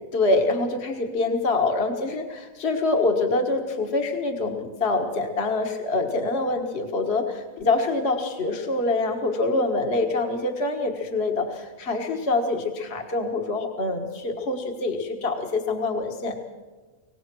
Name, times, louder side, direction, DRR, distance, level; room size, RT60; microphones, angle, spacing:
voice 1, 0.1-16.4, left 2 dB, 50° left, 3 dB, 1.8 m, -25 dB
24.0 x 18.5 x 6.1 m, 1.3 s
omnidirectional pair, 1.4 m